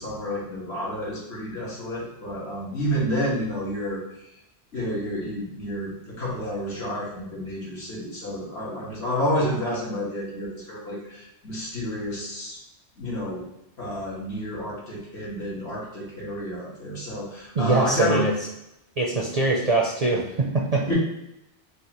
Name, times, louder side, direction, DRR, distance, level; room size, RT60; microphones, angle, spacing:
voice 1, 0.0-4.0 4.7-12.6 13.0-13.4 13.8-18.2 20.9-21.0, equal, 65° left, -6 dB, 1.7 m, -30 dB
voice 2, 17.5-18.3 19.0-20.8, right 2 dB, 50° right, -1 dB, 0.5 m, -23 dB
6.3 x 2.5 x 2.9 m, 0.84 s
omnidirectional pair, 1.2 m